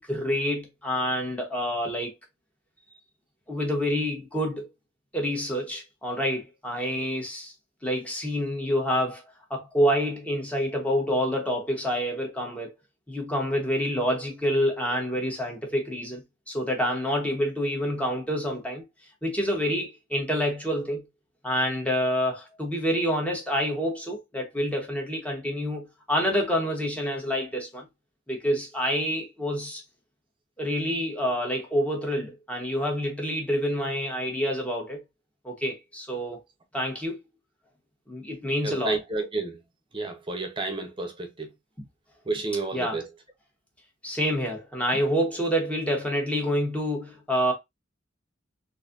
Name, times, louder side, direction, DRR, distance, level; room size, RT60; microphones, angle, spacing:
voice 1, 0.0-2.1 3.5-4.7 5.1-7.5 7.8-9.2 9.5-12.7 13.1-18.8 19.2-21.0 21.4-27.8 28.3-29.8 30.6-35.0 35.4-36.4 36.7-37.2 38.1-38.9 42.7-43.0 44.0-47.5, equal, 5° left, 1.0 m, -27 dB
voice 2, 38.6-39.6 39.9-41.5 42.3-43.1, right 3 dB, 25° right, 0.8 m, -30 dB
3.9 x 2.7 x 2.5 m
head